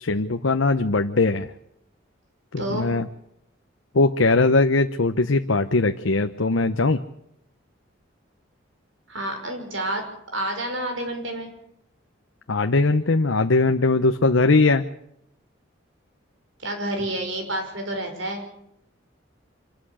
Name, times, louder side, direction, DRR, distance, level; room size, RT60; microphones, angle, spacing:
voice 1, 0.0-1.5 2.5-3.1 3.9-7.0 12.5-14.8, left 3 dB, 85° left, 7 dB, 0.9 m, -20 dB
voice 2, 2.6-2.9 9.1-10.1 10.3-11.5 16.6-18.4, right 1 dB, 75° right, 4 dB, 5.9 m, -29 dB
25.5 x 12.5 x 8.7 m, 0.76 s
head